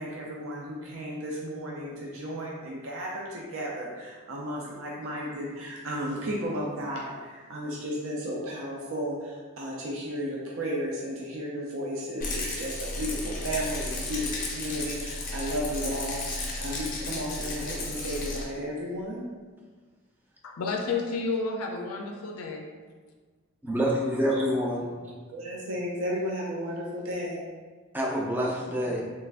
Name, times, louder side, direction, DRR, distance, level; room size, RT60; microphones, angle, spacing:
voice 1, 0.0-19.2 25.3-27.5, equal, 70° right, -3 dB, 0.5 m, -34 dB
Rattle, 12.2-18.4, left 2 dB, 40° left, 0.6 m, -34 dB
voice 2, 20.4-22.7, left 4 dB, 85° left, 2 dB, 0.4 m, -31 dB
voice 3, 23.6-24.9 27.9-29.0, equal, 10° right, -2 dB, 0.3 m, -27 dB
3.2 x 2.4 x 3.4 m, 1.5 s
head